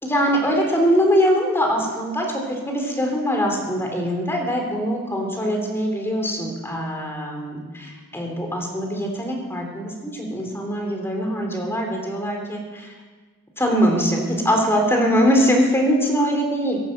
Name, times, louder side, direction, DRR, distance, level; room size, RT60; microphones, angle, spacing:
voice 1, 0.0-12.9 13.6-16.8, equal, 10° left, 1 dB, 3.3 m, -22 dB
17.5 x 10.5 x 7.7 m, 1.4 s
head